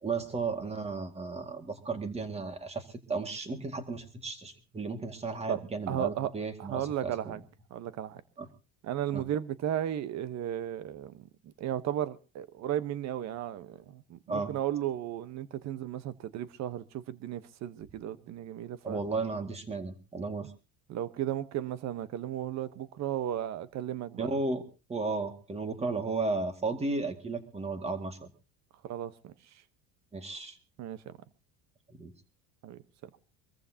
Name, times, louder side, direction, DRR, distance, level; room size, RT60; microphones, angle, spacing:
voice 1, 0.0-7.1 8.4-8.5 9.1-9.2 14.3-14.5 18.8-20.5 24.2-24.6 24.9-28.3 30.1-30.6 31.9-32.1, right 3 dB, 15° right, 2.1 m, -34 dB
voice 2, 5.9-6.3 6.6-7.4 7.7-8.2 8.8-19.0 20.9-24.3 28.8-29.3 30.8-31.1 32.6-33.1, right 11 dB, 50° right, 1.1 m, -35 dB
25.0 x 14.5 x 2.9 m
cardioid pair, 130°, 35 cm